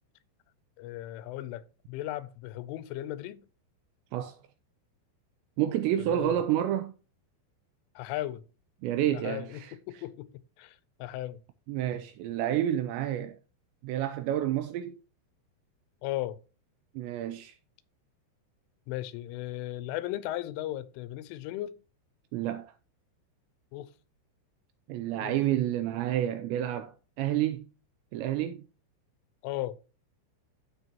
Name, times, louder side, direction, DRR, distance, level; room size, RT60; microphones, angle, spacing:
voice 1, 0.8-3.4 6.1-6.4 8.0-8.4 9.1-11.4 16.0-16.4 18.9-21.8 23.7-23.9 25.2-25.3 29.4-29.8, left 14 dB, 90° left, 3.2 m, -36 dB
voice 2, 5.6-6.9 8.8-9.7 11.7-13.4 13.8-15.0 17.0-17.5 22.3-22.7 24.9-27.7 28.1-28.7, right 12 dB, 85° right, 2.5 m, -29 dB
14.0 x 5.2 x 2.9 m
omnidirectional pair, 5.6 m